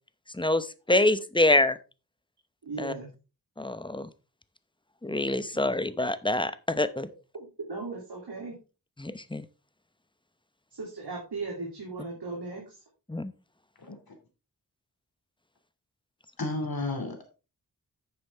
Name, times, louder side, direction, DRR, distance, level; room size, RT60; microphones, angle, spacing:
voice 1, 0.3-1.8 2.8-2.9 3.6-4.1 5.0-7.1 9.0-9.4 13.1-13.3, left 2 dB, 10° left, 14 dB, 0.8 m, -26 dB
voice 2, 2.6-3.1 7.3-8.5 10.7-12.7, right 3 dB, 80° right, -3 dB, 3.0 m, -37 dB
voice 3, 16.4-17.3, left 2 dB, 60° left, 4 dB, 2.9 m, -33 dB
10.0 x 6.8 x 3.5 m, 0.32 s
wide cardioid pair, 60°, 40 cm